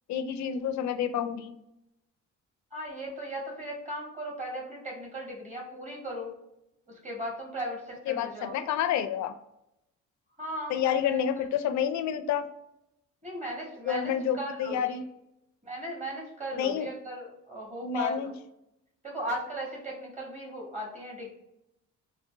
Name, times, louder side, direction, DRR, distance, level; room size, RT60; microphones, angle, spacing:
voice 1, 0.1-1.5 8.1-9.3 10.7-12.5 13.9-15.1 16.5-16.9 17.8-18.3, left 9 dB, 70° left, 10 dB, 0.4 m, -29 dB
voice 2, 2.7-6.3 6.9-8.5 10.4-11.2 11.7-11.8 13.2-15.0 15.6-18.2 19.0-21.3, right 1 dB, 25° right, -1 dB, 1.4 m, -37 dB
3.7 x 2.1 x 2.6 m, 0.82 s
cardioid pair, 90°, 30 cm